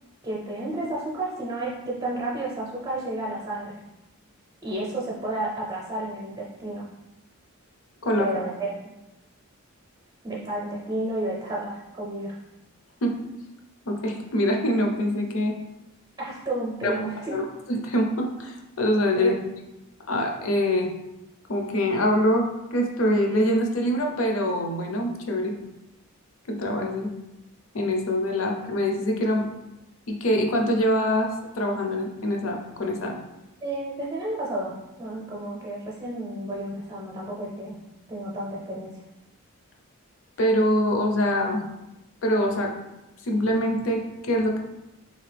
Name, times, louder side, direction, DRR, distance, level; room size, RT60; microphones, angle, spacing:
voice 1, 0.2-3.8 4.6-6.8 8.2-8.7 10.2-12.4 16.2-17.4 19.2-19.3 33.6-37.8 38.1-39.0, right 1 dB, 20° right, -5 dB, 0.6 m, -31 dB
voice 2, 13.9-15.5 16.8-17.0 17.3-19.3 20.1-20.9 21.5-25.5 26.5-27.1 27.7-29.5 30.1-33.2 40.4-41.6 42.2-42.7 43.2-44.6, equal, 65° left, 3 dB, 0.6 m, -24 dB
4.0 x 2.8 x 3.3 m, 0.95 s
head